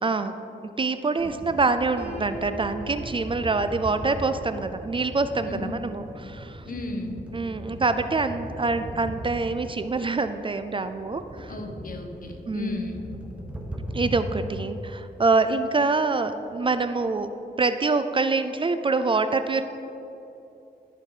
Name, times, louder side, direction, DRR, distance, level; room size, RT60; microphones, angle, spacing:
voice 1, 0.0-0.3 0.8-6.6 7.3-11.5 12.5-12.8 13.9-17.3 17.6-19.6, right 3 dB, 30° right, 10 dB, 0.4 m, -25 dB
sound 1, 1.2-14.4 14.9-15.0 15.2-15.4 15.8-17.4, equal, 5° right, 1.2 m, -39 dB
Piano, 2.0-7.8, right 3 dB, 85° right, 1.4 m, -44 dB
voice 2, 6.7-7.2 11.5-13.1, left 3 dB, 55° left, 4 dB, 1.0 m, -34 dB
12.0 x 5.5 x 4.9 m, 2.9 s
wide cardioid pair, 105°, 17 cm